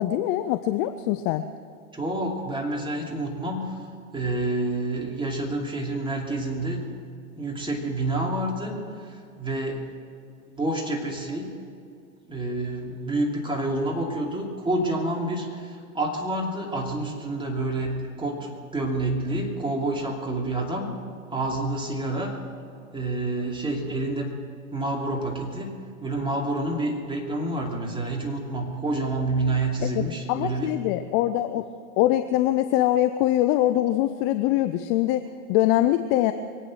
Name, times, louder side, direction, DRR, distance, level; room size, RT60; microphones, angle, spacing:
voice 1, 0.0-1.4 30.0-31.6 32.0-36.3, left 13 dB, 30° left, 10 dB, 0.5 m, -23 dB
voice 2, 1.9-3.8 4.1-6.8 7.4-9.9 10.5-11.5 12.3-20.9 21.3-22.3 22.9-24.4 24.7-30.7, right 2 dB, 10° right, 0 dB, 2.8 m, -28 dB
23.5 x 8.9 x 6.3 m, 2.3 s
hypercardioid pair, 100°, 44 cm